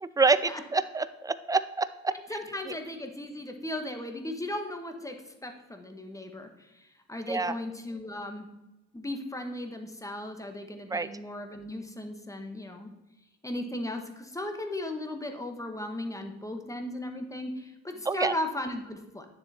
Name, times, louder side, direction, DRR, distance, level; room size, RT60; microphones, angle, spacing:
voice 1, 0.0-2.1 7.3-7.5 10.9-11.1 18.1-18.3, right 4 dB, 10° right, 14 dB, 0.5 m, -27 dB
voice 2, 2.3-8.5 8.9-12.9 13.4-19.3, left 1 dB, 10° left, 5 dB, 1.4 m, -36 dB
9.9 x 6.9 x 4.4 m, 0.99 s
cardioid pair, 90°, 30 cm